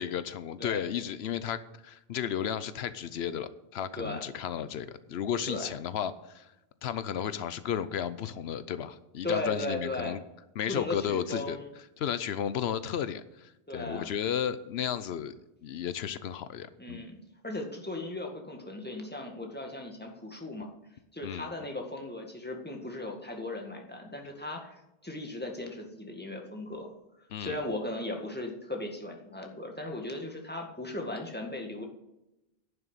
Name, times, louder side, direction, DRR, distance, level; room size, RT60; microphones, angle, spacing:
voice 1, 0.0-6.5 6.8-10.2 10.6-11.6 12.0-15.3 15.6-17.0 21.2-21.5 27.3-27.6, left 9 dB, 90° left, 14 dB, 0.9 m, -33 dB
voice 2, 9.2-10.2 10.7-11.7 13.7-14.1 16.8-20.7 21.1-26.9 27.4-31.8, left 2 dB, 10° left, 1 dB, 1.8 m, -37 dB
11.0 x 6.9 x 8.3 m, 0.92 s
omnidirectional pair, 1.0 m